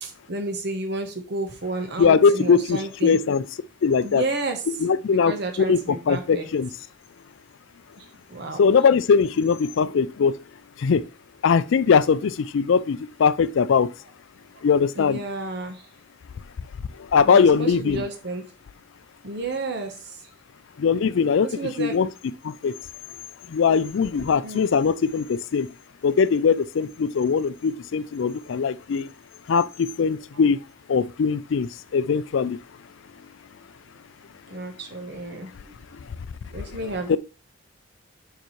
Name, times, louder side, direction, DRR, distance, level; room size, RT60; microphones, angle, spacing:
voice 1, 0.0-3.2 4.0-4.6 5.0-6.5 8.0-8.1 8.3-8.6 15.0-15.8 17.2-18.5 19.2-20.1 21.6-22.0 24.2-24.6 34.5-35.8 36.5-37.2, right 2 dB, 55° right, 1.0 m, -31 dB
voice 2, 2.0-3.4 3.8-4.2 4.7-5.3 5.7-6.7 8.6-10.4 10.8-11.1 11.4-13.9 14.6-15.2 17.0-18.0 20.8-21.5 21.8-22.1 22.4-22.8 23.5-25.7 26.0-29.1 29.5-30.6 30.9-32.6 36.6-36.7 37.1-37.2, left 6 dB, 65° left, 0.4 m, -21 dB
6.8 x 6.0 x 3.1 m
head